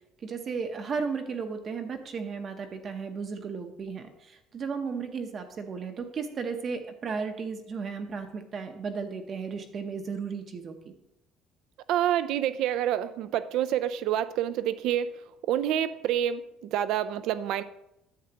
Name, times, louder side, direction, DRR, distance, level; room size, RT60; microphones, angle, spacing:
voice 1, 0.2-10.9, right 5 dB, 35° right, 6 dB, 0.8 m, -34 dB
voice 2, 11.9-17.6, right 11 dB, 65° right, 14 dB, 0.4 m, -28 dB
10.0 x 7.7 x 2.9 m, 0.85 s
cardioid pair, 165°, 0 cm